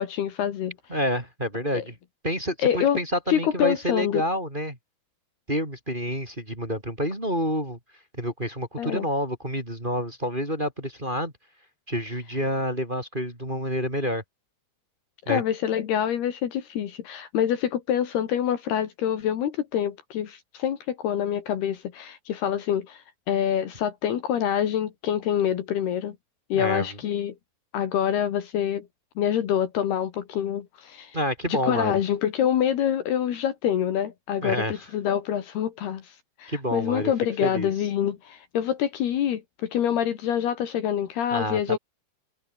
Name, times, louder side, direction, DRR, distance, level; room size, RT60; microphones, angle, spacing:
voice 1, 0.0-0.8 1.7-1.9 2.6-3.0 3.3-4.2 8.8-9.1 15.3-26.2 26.5-27.4 27.7-28.9 29.2-31.2 31.5-41.8, left 9 dB, 65° left, 3.7 m, -26 dB
voice 2, 0.9-1.9 2.2-4.8 5.5-7.8 8.2-11.3 11.9-14.2 15.3-15.4 26.5-26.9 31.1-31.9 34.4-34.7 36.5-37.1 37.4-37.7 41.3-41.8, equal, 10° right, 4.7 m, -28 dB
omnidirectional pair, 5.2 m